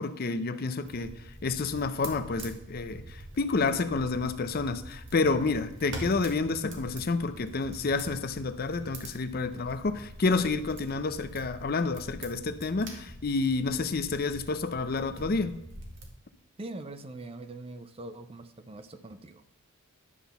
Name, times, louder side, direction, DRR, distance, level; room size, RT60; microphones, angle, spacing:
voice 1, 0.0-15.6, left 3 dB, 45° left, 11 dB, 0.5 m, -29 dB
sound 1, 0.8-16.1, right 1 dB, 55° right, 1.7 m, -45 dB
voice 2, 16.6-19.4, right 2 dB, 25° right, 10 dB, 0.5 m, -42 dB
11.0 x 3.8 x 6.9 m, 0.82 s
head